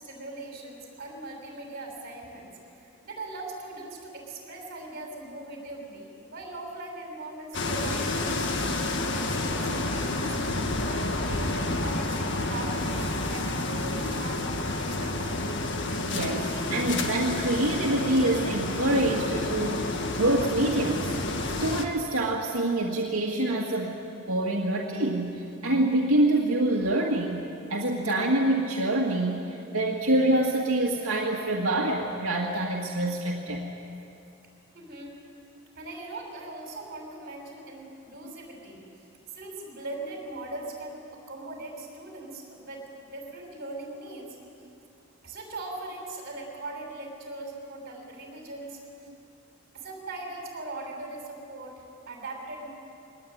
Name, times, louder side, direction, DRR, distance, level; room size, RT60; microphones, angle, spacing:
voice 1, 0.0-9.3 9.6-15.5 34.7-35.1 35.8-39.0 39.3-44.3 45.2-49.1 49.7-52.7, right 2 dB, 45° right, 1 dB, 6.2 m, -40 dB
sound 1, 7.5-21.9, left 2 dB, 55° left, 1.7 m, -29 dB
voice 2, 16.0-21.1 21.6-24.0 24.3-33.6, right 1 dB, 75° right, -2 dB, 2.0 m, -26 dB
23.0 x 20.0 x 9.4 m, 2.6 s
head